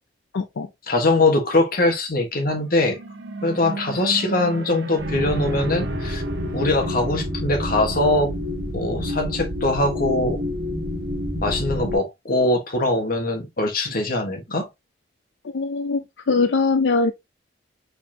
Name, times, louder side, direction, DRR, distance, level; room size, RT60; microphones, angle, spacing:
voice 1, 0.3-0.7 15.5-17.1, left 4 dB, 85° left, 0.5 m, -21 dB
voice 2, 0.9-3.0 3.4-6.2 6.5-8.3 8.7-10.4 11.4-14.7, left 2 dB, 55° left, 1.3 m, -22 dB
sound 1, 2.6-8.1, right 2 dB, 80° right, 0.9 m, -33 dB
sound 2, 5.0-12.0, left 1 dB, 55° right, 1.6 m, -28 dB
4.8 x 4.0 x 2.7 m
head